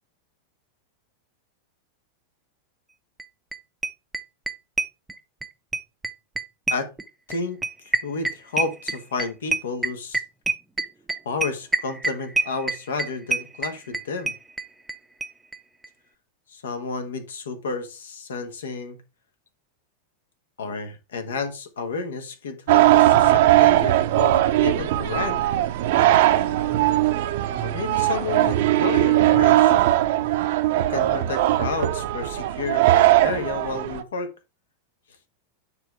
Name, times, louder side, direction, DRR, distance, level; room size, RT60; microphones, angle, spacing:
sound 1, 3.2-3.3 3.5-3.6 3.8-5.5 5.7-15.0 15.2-15.3 15.5-15.6 15.8-15.9, right 3 dB, 10° right, 0.7 m, -26 dB
voice 1, 7.3-7.6 7.8-10.2 11.2-14.3 16.5-19.0 20.6-25.4 27.6-29.9 30.8-34.3, left 4 dB, 65° left, 1.4 m, -31 dB
sound 2, 22.7-34.0, right 14 dB, 55° right, 0.7 m, -19 dB
9.1 x 3.5 x 4.8 m
figure-of-eight pair, 90°, 0 cm